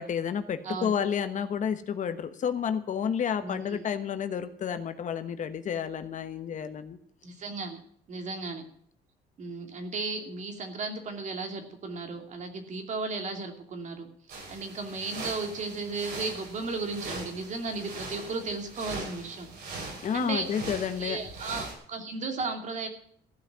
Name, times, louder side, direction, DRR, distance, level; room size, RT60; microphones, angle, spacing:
voice 1, 0.0-7.0 20.0-21.2, left 8 dB, 45° left, 10 dB, 1.1 m, -30 dB
voice 2, 3.4-3.8 7.2-7.8 8.1-8.6 9.4-19.5 20.1-20.5 21.0-22.9, right 3 dB, 45° right, 5 dB, 2.7 m, -35 dB
sound 1, 14.3-21.7, right 3 dB, 80° right, 5.8 m, -41 dB
15.0 x 5.9 x 9.6 m, 0.64 s
cardioid pair, 110°, 17 cm